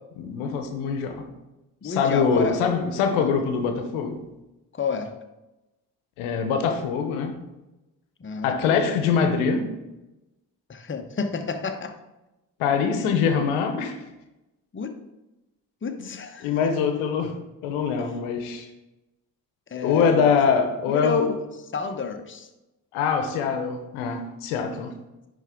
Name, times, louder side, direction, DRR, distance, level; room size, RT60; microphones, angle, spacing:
voice 1, 0.2-1.3 1.8-4.2 6.2-7.4 8.4-9.7 12.6-14.0 16.0-16.1 16.4-17.3 17.6-18.7 19.8-21.3 22.9-24.9, left 6 dB, 80° left, 6 dB, 0.9 m, -23 dB
voice 2, 1.8-2.6 3.1-3.3 4.7-5.1 8.2-8.9 10.7-11.9 14.7-15.0 15.8-16.5 19.7-20.3 20.9-21.4 21.7-22.5, left 5 dB, 25° left, 6 dB, 0.9 m, -30 dB
10.0 x 3.6 x 3.6 m, 0.99 s
hypercardioid pair, 45°, 49 cm